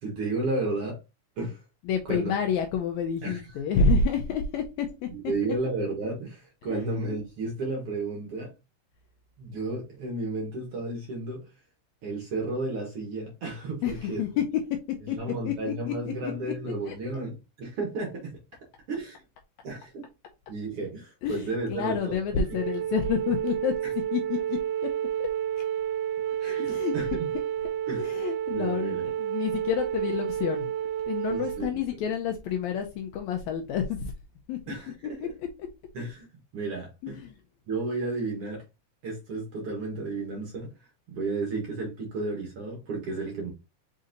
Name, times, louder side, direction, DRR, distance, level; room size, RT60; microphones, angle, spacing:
voice 1, 0.0-1.0 1.4-1.6 2.1-2.3 3.2-3.4 5.1-8.5 9.4-11.5 12.0-14.2 15.1-18.4 18.9-19.2 19.6-20.1 20.5-22.4 26.4-27.1 27.9-28.1 28.5-29.1 31.3-31.8 34.7-35.3 35.9-36.3 36.5-37.2 37.7-38.6 39.0-40.7 41.1-43.5, right 2 dB, 60° right, -1 dB, 1.7 m, -32 dB
voice 2, 1.8-5.3 6.6-6.8 13.8-14.4 15.1-15.2 15.4-16.9 21.2-23.7 24.1-24.9 25.2-25.3 25.6-25.7 26.6-26.9 27.9-30.7 31.1-34.1 34.5-34.7 35.2-35.3 37.0-37.3, left 6 dB, 85° left, 4 dB, 1.7 m, -29 dB
Wind instrument woodwind instrument, 22.5-31.6, right 10 dB, 85° right, 2.1 m, -30 dB
5.2 x 3.9 x 2.6 m, 0.26 s
omnidirectional pair, 3.8 m